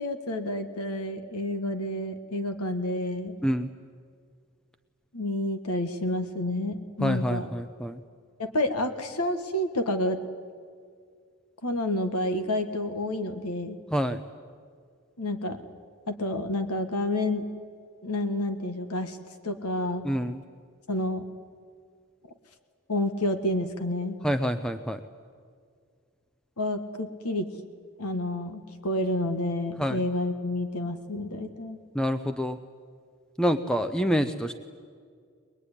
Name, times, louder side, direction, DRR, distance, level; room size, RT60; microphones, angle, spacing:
voice 1, 0.0-3.4 5.1-7.5 8.4-10.2 11.6-13.8 15.2-15.6 16.1-17.4 18.0-19.2 19.4-20.1 20.9-21.2 22.9-24.2 26.6-27.5 28.0-31.8, left 1 dB, 90° left, 8 dB, 1.5 m, -29 dB
voice 2, 7.0-8.0 13.9-14.2 20.0-20.4 24.2-25.0 29.8-30.0 31.9-32.6 33.4-34.5, equal, 5° left, 8 dB, 0.6 m, -27 dB
23.0 x 21.5 x 9.9 m, 2.1 s
head